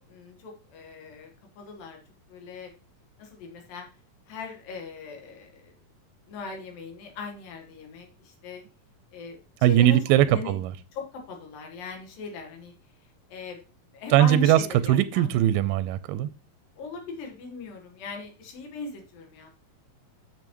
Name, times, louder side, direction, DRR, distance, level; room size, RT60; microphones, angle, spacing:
voice 1, 0.0-2.0 2.3-2.7 3.2-3.8 4.3-5.7 6.3-8.6 9.1-10.0 10.2-10.5 10.9-12.7 13.3-13.6 13.9-15.3 16.8-19.5, left 4 dB, 85° left, 3.2 m, -39 dB
voice 2, 9.6-10.7 14.1-14.6 14.9-16.3, right 12 dB, 90° right, 2.3 m, -20 dB
8.3 x 6.9 x 3.0 m
omnidirectional pair, 3.9 m